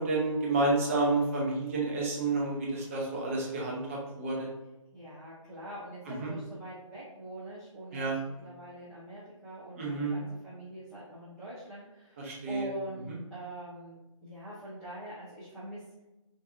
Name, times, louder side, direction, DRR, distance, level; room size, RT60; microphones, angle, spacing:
voice 1, 0.0-4.5 6.2-6.3 7.9-8.1 9.8-10.1 12.2-12.7 13.1-13.2, right 2 dB, 25° right, -2 dB, 0.8 m, -30 dB
voice 2, 4.9-16.0, right 1 dB, ahead, -15 dB, 0.5 m, -44 dB
4.9 x 2.6 x 2.5 m, 1.0 s
figure-of-eight pair, 150°, 17 cm